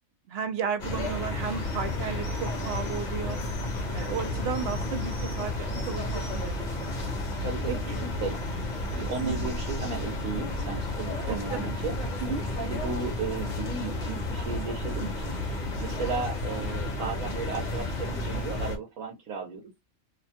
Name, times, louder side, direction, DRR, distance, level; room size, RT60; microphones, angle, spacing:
voice 1, 0.3-3.4 3.9-7.1 7.7-7.8 9.2-9.5 11.3-11.7 12.2-12.4, right 6 dB, 60° right, 0.7 m, -34 dB
sound 1, 0.8-18.8, left 2 dB, 40° left, 0.9 m, -32 dB
voice 2, 7.4-8.4 8.9-11.9 12.6-15.4 15.8-19.6, right 4 dB, 85° right, 1.2 m, -35 dB
2.8 x 2.2 x 2.7 m
omnidirectional pair, 1.4 m